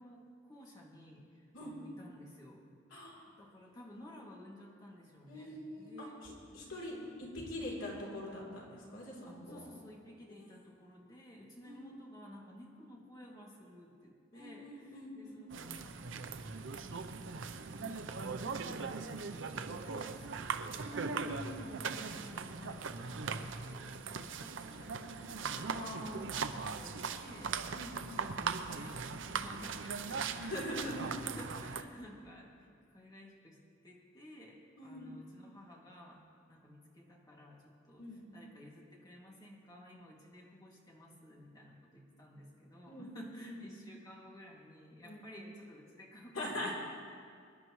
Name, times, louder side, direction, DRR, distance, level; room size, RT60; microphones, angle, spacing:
voice 1, 0.0-2.7 3.4-6.2 6.5-7.1 9.2-21.3 21.6-26.4 26.8-27.6 27.9-33.6 33.8-36.2 36.5-46.7, equal, 20° left, -3 dB, 2.3 m, -54 dB
voice 2, 2.9-3.3 5.3-9.7 11.6-11.8 14.3-15.5 20.8-21.8 24.3-24.5 25.7-26.4 27.7-28.3 30.4-31.1 34.8-35.2 38.0-38.2 42.9-43.7 45.0-45.2 46.3-46.7, left 1 dB, 75° left, -4 dB, 3.3 m, -44 dB
sound 1, 15.5-31.8, right 5 dB, 70° right, 0.6 m, -40 dB
24.5 x 11.0 x 3.1 m, 2.2 s
head